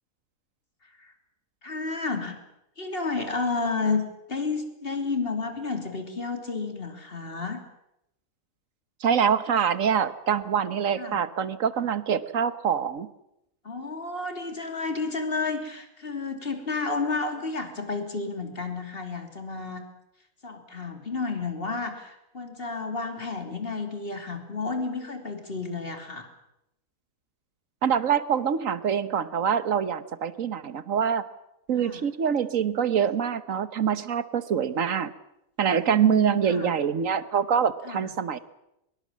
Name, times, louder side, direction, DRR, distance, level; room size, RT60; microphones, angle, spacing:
voice 1, 1.6-2.4 2.8-4.0 4.3-7.6 11.0-11.2 13.6-19.8 20.4-26.3 31.8-32.0 35.7-36.7 37.8-38.1, left 4 dB, 40° left, 5 dB, 3.4 m, -31 dB
voice 2, 9.0-13.1 27.8-31.2 31.7-35.1 35.6-38.4, right 7 dB, 65° right, 14 dB, 1.5 m, -25 dB
23.5 x 22.0 x 7.4 m, 0.85 s
omnidirectional pair, 1.5 m